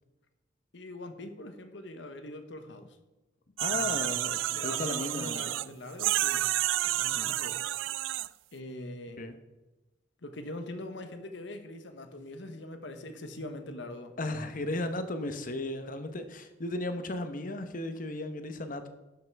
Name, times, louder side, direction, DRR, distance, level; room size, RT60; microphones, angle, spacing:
voice 1, 0.7-3.0 3.6-3.9 4.5-6.5 6.8-7.6 8.5-9.2 10.2-14.1, left 1 dB, 70° left, 1.1 m, -42 dB
voice 2, 3.6-5.7 7.1-7.4 9.2-9.3 14.2-18.9, left 2 dB, 45° left, 0.9 m, -35 dB
sound 1, 3.6-5.7 6.0-8.3, right 14 dB, 85° right, 0.3 m, -30 dB
11.5 x 5.7 x 4.7 m
head